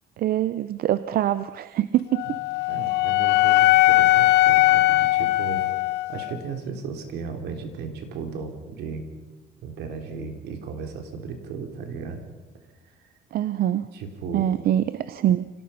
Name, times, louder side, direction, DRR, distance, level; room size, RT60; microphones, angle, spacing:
voice 1, 0.2-2.4 13.3-13.9 14.3-15.5, right 12 dB, 60° right, 14 dB, 0.7 m, -24 dB
Wind instrument woodwind instrument, 2.1-6.3, left 17 dB, 85° left, 0.9 m, -19 dB
voice 2, 2.7-5.7 6.1-9.0 9.6-12.2 12.8-13.1 13.9-14.5, right 5 dB, 80° right, 5 dB, 3.6 m, -35 dB
25.5 x 18.0 x 5.7 m, 1.1 s
cardioid pair, 110°, 17 cm